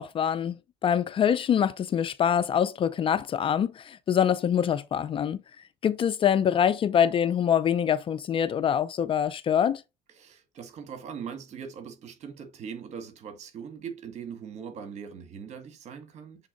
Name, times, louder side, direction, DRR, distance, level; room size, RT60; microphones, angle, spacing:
voice 1, 0.0-5.4 5.8-9.8, left 8 dB, 35° left, 0.5 m, -25 dB
voice 2, 10.1-16.5, right 7 dB, 50° right, 1.9 m, -41 dB
7.1 x 3.7 x 4.0 m
supercardioid pair, 95°, 15 cm